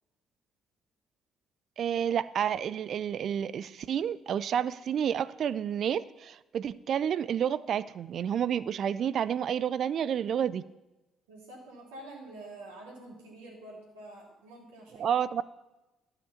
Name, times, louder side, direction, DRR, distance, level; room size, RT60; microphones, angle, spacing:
voice 1, 1.8-10.6 15.0-15.4, right 8 dB, 55° right, 17 dB, 0.4 m, -30 dB
voice 2, 11.3-15.1, right 2 dB, 85° right, -3 dB, 2.9 m, -47 dB
12.5 x 5.9 x 7.1 m, 1.0 s
hypercardioid pair, 50°, 0 cm